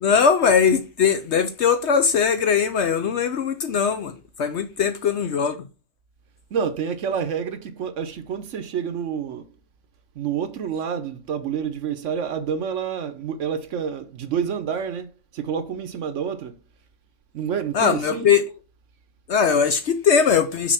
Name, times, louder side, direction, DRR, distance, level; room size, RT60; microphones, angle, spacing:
voice 1, 0.0-5.6 17.7-18.4 19.3-20.7, left 6 dB, 60° left, 0.8 m, -20 dB
voice 2, 6.5-9.5 10.2-16.6 17.3-18.3, right 7 dB, 60° right, 1.0 m, -28 dB
6.2 x 4.2 x 5.7 m
omnidirectional pair, 1.5 m